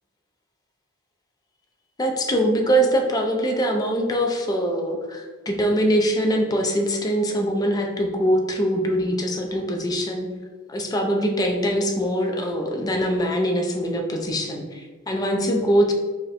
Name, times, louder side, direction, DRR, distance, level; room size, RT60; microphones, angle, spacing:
voice 1, 2.0-10.3 10.7-15.9, equal, 20° left, 2 dB, 0.3 m, -23 dB
2.5 x 2.1 x 4.0 m, 1.4 s
head